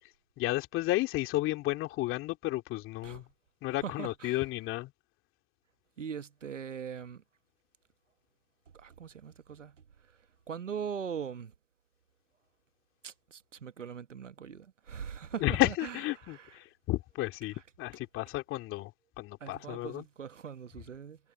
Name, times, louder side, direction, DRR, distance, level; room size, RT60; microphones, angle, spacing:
voice 1, 0.4-3.2 3.6-4.9 15.3-18.9 19.2-20.1, left 18 dB, 35° left, 2.6 m, -32 dB
voice 2, 3.8-4.4 6.0-7.2 8.8-9.7 10.5-11.5 13.0-15.7 19.4-21.2, right 7 dB, 90° right, 1.2 m, -40 dB
hypercardioid pair, 105°, 36 cm